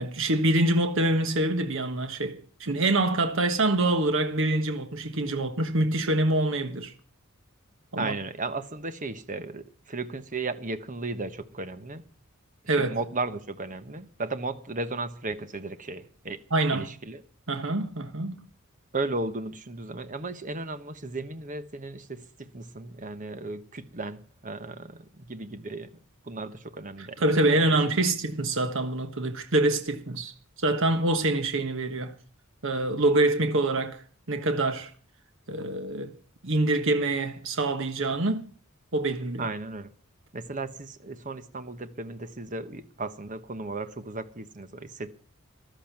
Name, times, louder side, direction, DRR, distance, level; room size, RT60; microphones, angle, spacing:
voice 1, 0.0-6.9 7.9-8.1 12.7-13.0 16.5-16.9 17.5-18.4 27.0-30.3 30.6-32.1 32.6-34.9 35.5-36.1 36.4-38.5 38.9-39.5, right 2 dB, 60° right, 1.4 m, -25 dB
voice 2, 8.0-12.0 12.6-16.4 16.7-17.2 18.9-26.0 26.2-27.2 27.5-28.0 39.4-39.9 40.3-45.1, right 3 dB, 35° right, 1.2 m, -35 dB
14.5 x 12.5 x 6.0 m
head